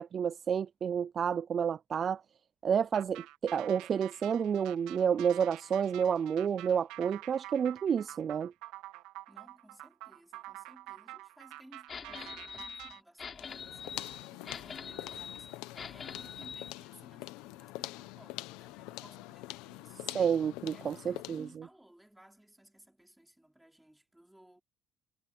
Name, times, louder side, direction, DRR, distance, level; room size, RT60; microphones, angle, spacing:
voice 1, 0.0-2.2 2.6-8.5 20.1-21.5, right 7 dB, 30° right, 0.3 m, -30 dB
sound 1, 2.9-13.0, right 17 dB, 80° right, 1.6 m, -48 dB
voice 2, 9.3-13.8 14.3-20.0 20.7-24.6, right 1 dB, 5° right, 5.0 m, -59 dB
sound 2, 11.9-16.7, left 6 dB, 25° left, 4.9 m, -44 dB
sound 3, 13.4-21.6, left 19 dB, 85° left, 0.9 m, -45 dB
cardioid pair, 175°, 0 cm